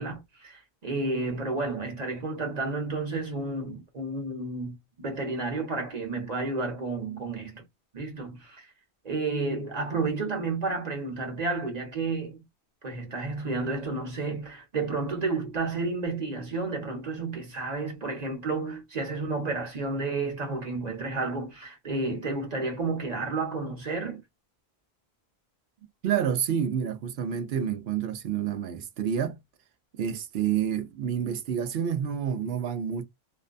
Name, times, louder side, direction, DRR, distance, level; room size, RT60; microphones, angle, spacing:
voice 1, 0.0-7.6 7.9-8.7 9.0-12.4 12.8-24.2, right 3 dB, 40° right, 1.0 m, -31 dB
voice 2, 26.0-29.4 30.0-33.0, right 8 dB, 70° right, 0.8 m, -28 dB
2.6 x 2.2 x 2.4 m
omnidirectional pair, 1.1 m